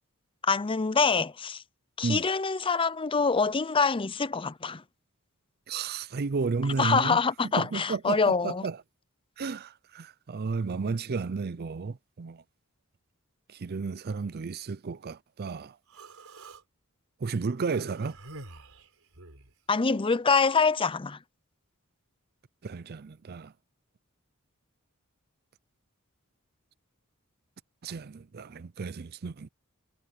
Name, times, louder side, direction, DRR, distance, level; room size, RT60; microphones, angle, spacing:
voice 1, 0.4-1.6 2.0-4.8 6.8-8.6 19.7-21.2, left 5 dB, 25° left, 0.6 m, -25 dB
voice 2, 5.7-7.2 7.5-8.8 9.4-12.4 13.5-15.8 17.2-18.2 22.6-23.5 27.8-29.5, right 4 dB, 45° right, 0.5 m, -32 dB
Human voice, 15.9-16.6 17.5-19.5, right 2 dB, 90° right, 4.0 m, -47 dB
head